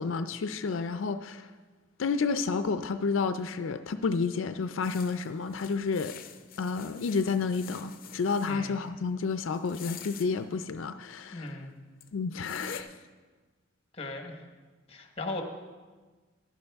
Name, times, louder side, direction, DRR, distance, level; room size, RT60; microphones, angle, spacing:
voice 1, 0.0-1.5 2.0-6.2 6.6-11.6 12.1-12.9, left 4 dB, 85° left, 9 dB, 0.5 m, -30 dB
sound 1, 4.8-8.6 9.5-10.3 11.5-11.6 12.0-12.1 12.4-12.8, left 7 dB, 50° left, 0.6 m, -46 dB
voice 2, 8.4-8.8 11.3-11.7 14.0-14.4 14.9-15.4, left 2 dB, 30° left, 4 dB, 1.2 m, -37 dB
15.0 x 11.0 x 3.5 m, 1.4 s
head